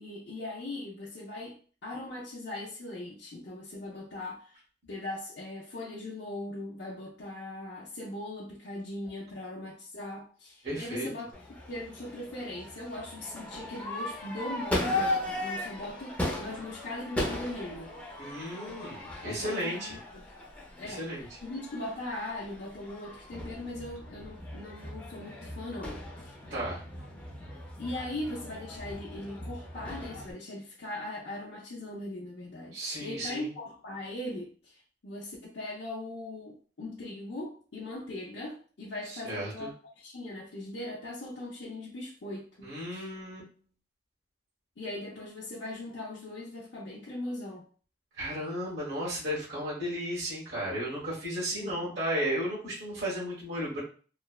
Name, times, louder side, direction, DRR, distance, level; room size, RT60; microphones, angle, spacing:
voice 1, 0.0-1.6 1.8-4.6 4.9-11.3 11.7-18.0 19.2-20.2 20.8-26.3 27.8-43.1 44.8-47.7 51.5-52.0, left 1 dB, 80° left, -6 dB, 0.6 m, -40 dB
voice 2, 10.6-11.1 18.2-20.0 20.8-21.3 26.5-26.8 32.7-33.5 39.0-39.7 42.6-43.4 48.2-53.8, equal, 70° right, -7 dB, 1.3 m, -34 dB
Crowd / Fireworks, 11.3-30.3, left 1 dB, 10° left, 0.6 m, -38 dB
3.1 x 2.0 x 2.3 m, 0.40 s
head